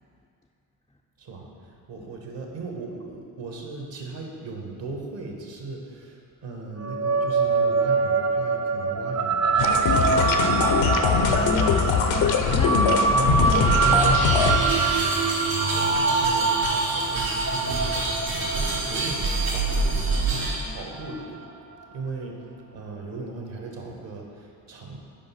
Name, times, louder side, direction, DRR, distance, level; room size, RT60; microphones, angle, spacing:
voice 1, 1.2-10.6 15.7-19.9 20.7-21.5 21.9-22.4 22.7-25.0, right 3 dB, 65° right, 1 dB, 1.4 m, -38 dB
sound 1, 6.8-21.5, right 4 dB, 35° right, 0.6 m, -25 dB
sound 2, 9.6-14.6, left 6 dB, 65° left, 0.7 m, -22 dB
voice 2, 11.2-14.8 20.7-20.8, left 1 dB, 10° left, -2 dB, 0.4 m, -34 dB
sound 3, 13.1-20.6, right 2 dB, 85° right, 1.5 m, -26 dB
5.3 x 5.1 x 5.7 m, 2.4 s
hypercardioid pair, 45°, 48 cm